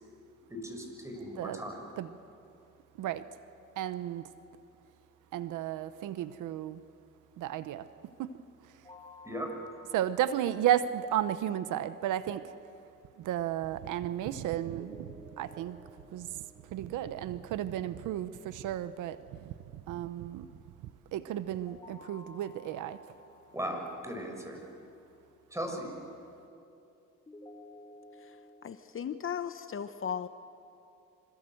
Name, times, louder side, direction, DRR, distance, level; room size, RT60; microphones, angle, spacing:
voice 1, 0.5-1.8 9.2-9.5 23.5-24.6 25.5-25.9, equal, 10° right, 2 dB, 6.7 m, -37 dB
voice 2, 3.8-4.3 5.3-6.8 7.4-7.9 8.2-8.4 9.9-12.5 13.2-15.8 16.1-16.4 16.7-20.5 21.1-23.0, right 11 dB, 85° right, 13 dB, 0.9 m, -33 dB
sound 1, 8.8-11.8 14.7-17.8 21.5-24.7 27.3-28.7, left 2 dB, 15° left, 2.9 m, -54 dB
voice 3, 28.2-30.3, left 8 dB, 45° left, 10 dB, 0.9 m, -37 dB
26.5 x 26.5 x 7.9 m, 2.7 s
cardioid pair, 90°, 30 cm